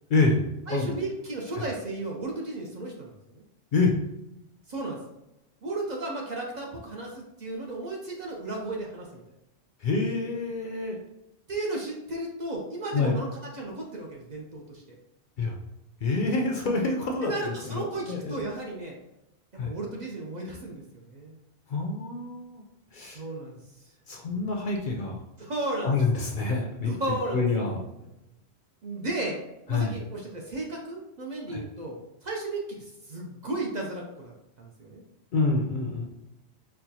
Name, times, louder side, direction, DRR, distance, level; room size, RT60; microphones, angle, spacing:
voice 1, 0.7-3.4 4.7-5.0 5.6-9.2 11.5-13.3 13.5-14.8 17.2-18.9 19.5-21.4 23.1-23.6 24.2-24.4 25.4-25.9 26.8-27.5 28.8-29.4 29.7-35.0, right 2 dB, 50° right, -1 dB, 0.6 m, -34 dB
voice 2, 9.8-11.0 12.9-13.1 15.4-15.5 16.0-18.4 19.6-19.7 21.7-22.6 22.9-23.2 24.1-25.2 25.8-26.9 27.3-27.8 29.7-29.9 31.5-31.6 35.3-36.0, left 3 dB, 60° left, 0 dB, 0.6 m, -27 dB
4.3 x 2.1 x 2.7 m, 0.91 s
omnidirectional pair, 1.1 m